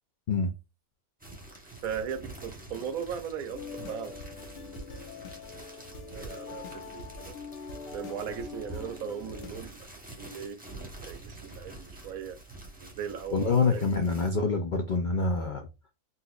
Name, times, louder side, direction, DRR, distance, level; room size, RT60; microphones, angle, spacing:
sound 1, 1.2-14.3, right 2 dB, 10° right, 0.8 m, -47 dB
voice 1, 1.8-4.2 4.6-5.0 6.1-7.3 7.9-10.6 11.0-12.4 12.8-13.9, right 7 dB, 80° right, 1.0 m, -38 dB
sound 2, 3.5-9.5, left 4 dB, 50° left, 0.9 m, -43 dB
voice 2, 13.3-15.7, left 4 dB, 80° left, 0.4 m, -26 dB
4.0 x 2.8 x 2.3 m
omnidirectional pair, 1.5 m